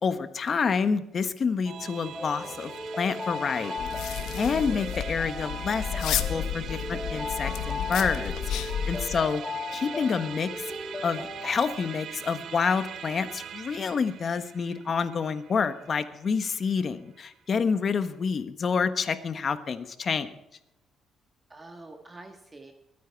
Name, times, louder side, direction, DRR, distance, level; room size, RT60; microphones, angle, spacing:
voice 1, 0.0-2.7 3.0-8.3 8.6-9.4 9.7-10.6 11.0-20.3, left 5 dB, 45° left, 11 dB, 1.3 m, -28 dB
Musical instrument, 1.6-17.2, right 9 dB, 65° right, 0.6 m, -42 dB
sound 1, 2.1-11.7, left 3 dB, 30° left, 2.8 m, -37 dB
sound 2, 3.8-9.2, left 9 dB, 85° left, 1.0 m, -32 dB
voice 2, 8.9-9.4 21.5-22.7, right 2 dB, 25° right, 5 dB, 1.6 m, -46 dB
22.0 x 9.3 x 4.6 m, 0.85 s
cardioid pair, 90°, 0 cm